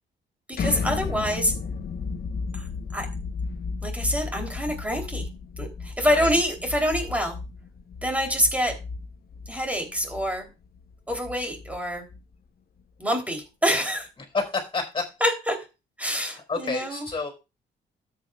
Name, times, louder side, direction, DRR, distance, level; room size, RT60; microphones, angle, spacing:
sound 1, 0.5-12.4, left 4 dB, 50° left, 0.9 m, -33 dB
voice 1, 0.5-1.5 2.5-3.1 3.8-5.3 5.6-7.4 8.0-8.7 9.5-10.5 11.1-12.0 13.0-14.1 15.2-15.6 16.0-17.1, equal, 5° right, 3 dB, 3.1 m, -26 dB
voice 2, 6.0-6.3 14.2-15.1 16.1-17.3, left 4 dB, 25° left, 5 dB, 4.3 m, -30 dB
13.0 x 8.5 x 2.3 m, 0.28 s
cardioid pair, 90°, 20 cm